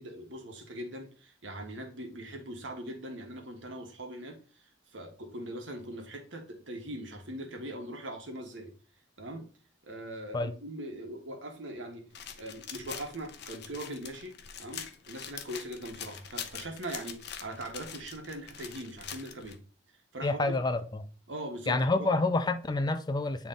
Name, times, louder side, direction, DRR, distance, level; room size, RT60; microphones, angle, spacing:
voice 1, 0.0-4.4 4.9-8.7 9.2-9.4 9.8-12.1 12.4-19.6 20.1-20.5 21.3-22.1, right 1 dB, 75° right, 1.5 m, -41 dB
sound 1, 12.1-19.6, left 8 dB, 60° left, 0.8 m, -44 dB
voice 2, 20.2-21.1 21.7-23.5, left 2 dB, 20° left, 0.4 m, -28 dB
8.3 x 3.5 x 3.8 m
head